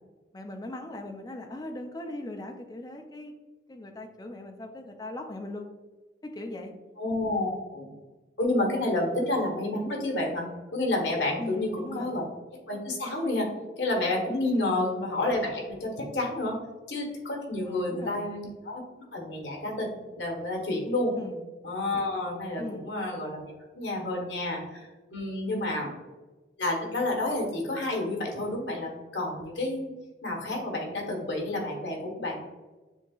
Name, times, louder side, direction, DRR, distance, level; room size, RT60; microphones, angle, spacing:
voice 1, 0.3-3.4 3.7-5.7 6.2-6.7 11.4-12.2 14.5-14.9 17.6-18.2 21.1-21.4 22.6-22.9 25.5-25.7, left 2 dB, 20° left, 3 dB, 0.4 m, -39 dB
voice 2, 7.0-7.9 8.4-12.2 12.7-13.5 13.8-16.6 16.9-18.8 19.1-21.1 21.6-25.9 26.6-30.0 30.2-32.4, left 2 dB, 80° left, 0 dB, 1.2 m, -30 dB
7.0 x 2.8 x 2.4 m, 1.2 s
head